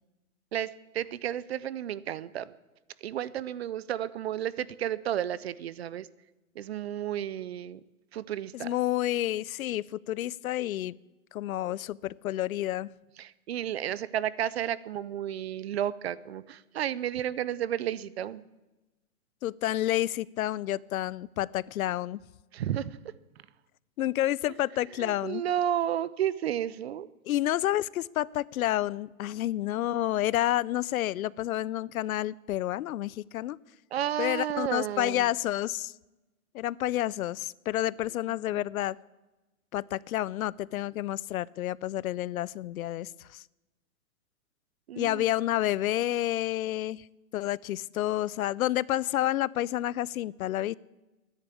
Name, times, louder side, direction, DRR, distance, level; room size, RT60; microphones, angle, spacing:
voice 1, 0.5-2.5 3.0-6.1 6.6-7.8 8.1-8.7 13.2-18.4 22.5-23.0 25.0-27.1 33.9-35.3 38.5-38.6 44.9-45.3, right 11 dB, 45° right, 19 dB, 0.5 m, -32 dB
voice 2, 8.5-10.9 11.3-12.9 19.4-22.2 24.0-25.4 27.3-33.6 34.2-35.9 36.5-39.0 39.7-43.4 45.0-47.1 47.3-50.8, left 14 dB, 75° left, 23 dB, 0.5 m, -29 dB
12.0 x 10.5 x 8.4 m, 1.1 s
hypercardioid pair, 160°, 43 cm